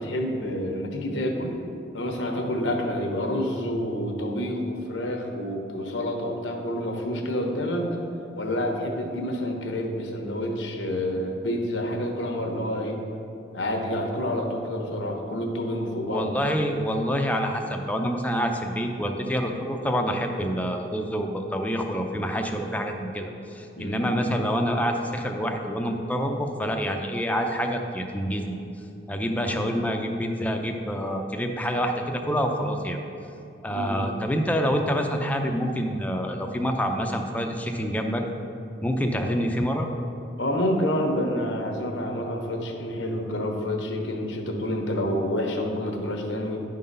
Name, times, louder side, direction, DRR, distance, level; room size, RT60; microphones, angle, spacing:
voice 1, 0.0-1.6 1.9-7.9 8.3-13.0 13.5-16.3 23.8-24.1 29.3-29.7 33.7-34.1 39.2-39.4 40.4-46.6, left 1 dB, 85° left, 2 dB, 1.0 m, -28 dB
voice 2, 16.1-28.6 29.1-33.0 33.6-38.2 38.8-39.9, equal, 10° left, 3 dB, 0.5 m, -27 dB
10.0 x 3.9 x 5.4 m, 2.7 s
head